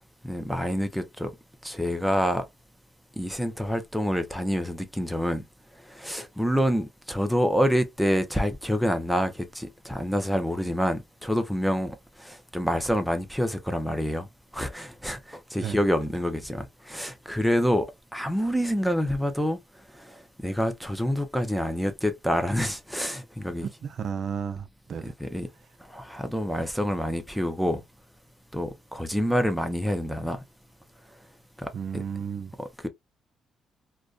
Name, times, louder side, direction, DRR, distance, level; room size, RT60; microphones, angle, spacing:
voice 1, 0.2-1.3 1.6-2.4 3.2-5.4 5.9-14.3 14.5-19.6 19.9-23.7 25.0-25.5 25.9-27.8 28.5-30.4 31.6-32.0 32.6-32.9, equal, ahead, 0.5 m, -27 dB
voice 2, 23.8-25.0 31.7-32.5, right 7 dB, 60° right, 0.4 m, -33 dB
2.4 x 2.2 x 2.3 m
cardioid pair, 90°, 0 cm